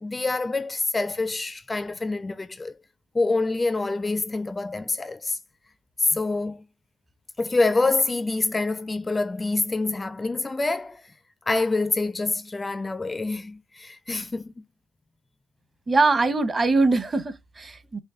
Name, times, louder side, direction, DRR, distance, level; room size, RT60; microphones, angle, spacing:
voice 1, 0.0-2.8 3.1-5.4 6.0-6.6 7.4-11.1 11.5-14.5, left 3 dB, 20° left, 0.4 m, -26 dB
voice 2, 15.9-18.0, right 3 dB, 30° right, 0.9 m, -22 dB
5.3 x 2.2 x 2.4 m
supercardioid pair, 80°, 0 cm